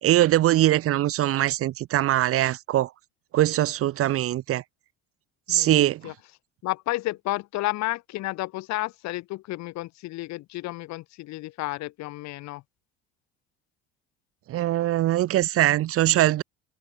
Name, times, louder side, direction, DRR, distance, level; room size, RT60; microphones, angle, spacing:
voice 1, 0.0-2.9 3.3-4.6 5.5-6.1 14.5-16.4, right 14 dB, 45° right, 0.8 m, -22 dB
voice 2, 5.5-6.1 6.6-12.6, left 18 dB, 60° left, 1.8 m, -32 dB
hypercardioid pair, 65°, 31 cm